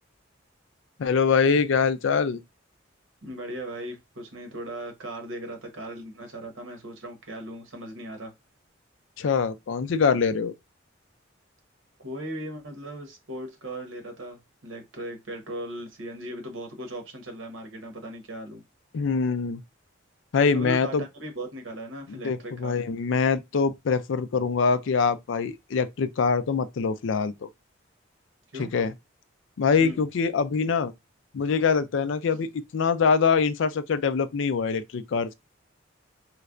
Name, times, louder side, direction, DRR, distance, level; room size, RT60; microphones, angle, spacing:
voice 1, 1.0-2.4 9.2-10.5 18.9-19.6 20.3-21.0 22.1-27.5 28.6-28.9 29.6-30.9 31.3-35.3, left 5 dB, 70° left, 0.4 m, -24 dB
voice 2, 3.2-8.3 12.0-18.6 20.5-22.7 28.5-28.7 29.8-30.0, right 1 dB, 80° right, 1.0 m, -38 dB
3.2 x 3.1 x 2.4 m
head